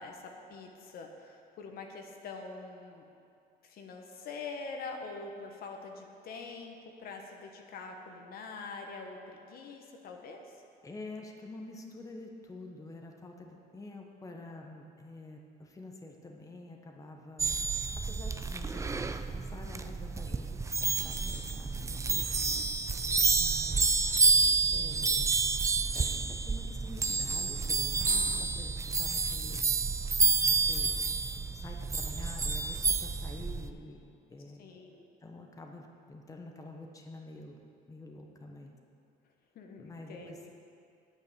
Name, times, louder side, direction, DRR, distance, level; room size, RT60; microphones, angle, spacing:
voice 1, 0.0-3.0 3.6-10.6 22.9-23.2 34.6-35.1 39.5-40.5, left 4 dB, 60° left, 2 dB, 1.3 m, -44 dB
voice 2, 10.8-17.6 18.1-22.4 23.3-24.0 24.7-25.5 25.9-29.6 30.5-30.9 31.3-34.6 35.2-37.6 37.9-38.7 39.8-40.4, left 2 dB, 20° left, 1 dB, 1.2 m, -47 dB
sound 1, 17.4-33.7, right 4 dB, 20° right, 0.5 m, -29 dB
8.9 x 8.7 x 6.9 m, 2.5 s
cardioid pair, 110°, 17 cm